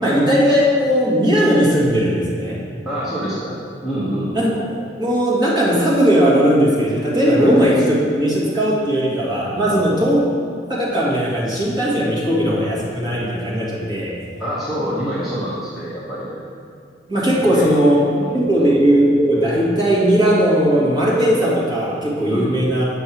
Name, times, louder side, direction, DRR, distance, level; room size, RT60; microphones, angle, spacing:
voice 1, 0.0-2.6 4.3-4.5 5.0-10.2 10.7-14.2 17.1-18.0 18.3-22.9, equal, 25° right, -7 dB, 1.9 m, -17 dB
voice 2, 2.8-4.4 7.4-7.5 9.7-10.1 14.4-16.4 17.4-17.9 18.2-18.7 22.3-22.5, equal, ahead, -10 dB, 1.2 m, -27 dB
7.7 x 5.7 x 4.6 m, 2.4 s
head